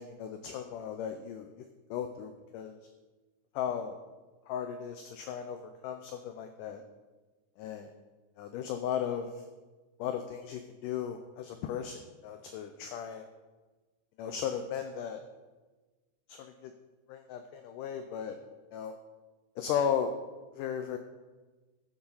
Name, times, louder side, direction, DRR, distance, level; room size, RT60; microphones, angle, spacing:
voice 1, 0.0-1.6 1.9-2.8 3.5-4.0 4.5-6.8 7.6-7.9 8.4-9.4 10.0-13.3 14.2-15.2 16.3-16.7 17.1-18.4 18.7-19.0 19.6-20.1 20.5-21.0, left 8 dB, 90° left, 7 dB, 1.8 m, -36 dB
11.5 x 7.2 x 5.5 m, 1.3 s
omnidirectional pair, 4.5 m